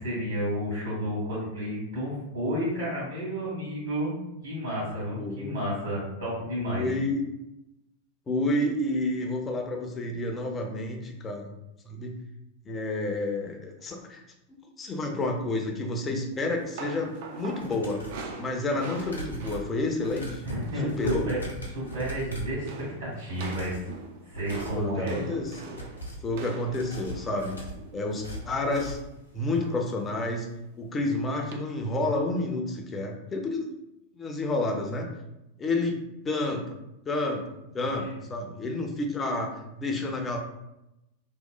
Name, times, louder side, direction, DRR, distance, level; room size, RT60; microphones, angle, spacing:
voice 1, 0.0-4.1 4.4-6.9 20.4-21.4 21.7-23.8 24.2-25.2, equal, 70° right, -10 dB, 1.3 m, -31 dB
voice 2, 5.2-5.6 6.6-7.2 8.3-11.5 11.9-12.2 12.6-14.2 14.8-18.0 18.4-20.4 20.8-21.3 24.7-25.9 26.2-27.6 27.9-29.0 29.3-30.5 30.8-33.6 34.1-35.1 35.6-36.0 36.2-36.7 37.1-37.4 37.7-40.4, left 2 dB, 20° left, 2 dB, 0.4 m, -30 dB
sound 1, 16.4-20.9 21.2-21.5 21.8-22.3 22.7-28.7 29.5-29.9 30.3-30.4 31.5-31.6, right 5 dB, 50° right, 0.3 m, -43 dB
sound 2, 17.5-18.3 18.9-22.6 23.3-23.9 24.3-24.8 25.3-26.3 26.7-29.2 29.5-29.6 30.0-30.1, equal, 80° left, 0.6 m, -40 dB
2.8 x 2.0 x 2.4 m, 0.90 s
figure-of-eight pair, 90°, 0 cm